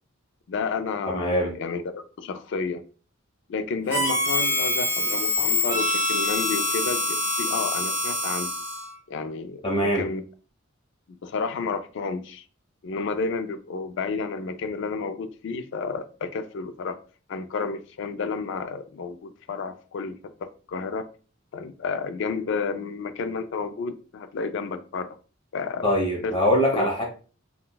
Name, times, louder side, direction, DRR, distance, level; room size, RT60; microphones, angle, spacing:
voice 1, 0.5-2.8 3.5-8.5 9.1-10.2 11.1-12.4 12.8-17.0 17.3-20.2 20.4-21.1 21.5-25.1 25.5-25.9 26.2-26.3 26.7-26.9, left 4 dB, 60° left, 0.3 m, -31 dB
voice 2, 1.0-1.5 9.6-10.1 25.8-27.0, equal, 25° left, 1.0 m, -23 dB
Harmonica, 3.9-8.9, left 2 dB, 15° right, 1.3 m, -25 dB
3.9 x 2.2 x 2.2 m
head